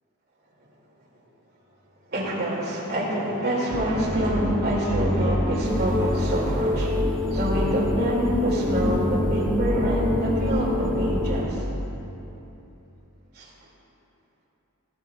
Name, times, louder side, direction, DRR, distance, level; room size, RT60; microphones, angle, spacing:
voice 1, 2.1-7.0 7.3-11.6 13.3-13.5, right 1 dB, 50° right, -3 dB, 2.4 m, -26 dB
sound 1, 3.7-12.0, equal, 5° left, 0.7 m, -27 dB
sound 2, 5.6-11.4, left 4 dB, 25° right, 0.9 m, -31 dB
15.5 x 13.5 x 2.4 m, 2.9 s
head